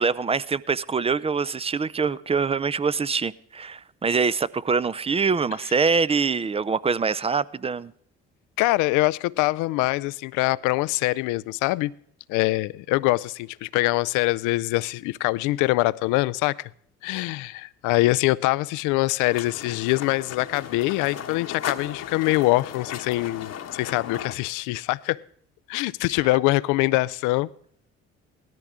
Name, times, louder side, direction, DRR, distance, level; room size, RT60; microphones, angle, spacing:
voice 1, 0.0-7.9, right 5 dB, 20° right, 0.4 m, -24 dB
voice 2, 8.6-11.9 12.3-16.7 17.0-25.2 25.7-27.5, left 19 dB, 70° left, 0.5 m, -24 dB
sound 1, 19.3-24.3, left 9 dB, 55° left, 1.1 m, -36 dB
17.5 x 13.5 x 3.6 m
hypercardioid pair, 55°, 31 cm